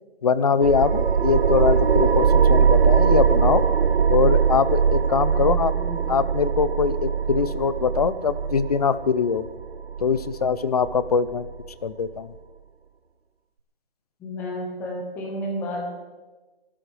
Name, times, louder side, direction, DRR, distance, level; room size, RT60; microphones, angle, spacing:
voice 1, 0.2-3.6 4.1-5.7 6.1-9.4 10.0-11.5 11.8-12.3, left 6 dB, 40° left, 15 dB, 0.7 m, -22 dB
sound 1, 0.6-11.7, right 6 dB, 90° right, 1.0 m, -21 dB
voice 2, 5.3-6.2 14.2-16.0, equal, 5° left, -1 dB, 1.3 m, -32 dB
28.0 x 13.0 x 3.4 m, 1.2 s
hypercardioid pair, 175°, 30 cm